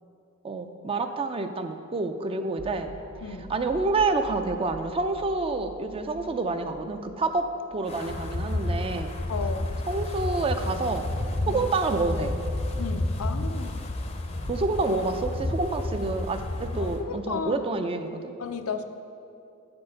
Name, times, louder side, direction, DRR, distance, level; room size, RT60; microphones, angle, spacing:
voice 1, 0.4-2.9 3.5-9.2 9.9-11.1 11.5-12.4 14.5-18.3, right 3 dB, 25° right, 8 dB, 0.4 m, -28 dB
sound 1, 2.6-8.9 9.3-9.4 10.9-13.4 14.4-17.1, right 1 dB, 55° right, 1.1 m, -46 dB
voice 2, 3.2-3.5 9.3-9.8 11.4-11.6 12.8-13.9 16.7-17.6 18.4-18.8, left 5 dB, 75° left, 8 dB, 0.5 m, -34 dB
Wind, 7.9-17.0, left 1 dB, 30° left, 0.6 m, -31 dB
8.6 x 4.4 x 6.2 m, 2.6 s
head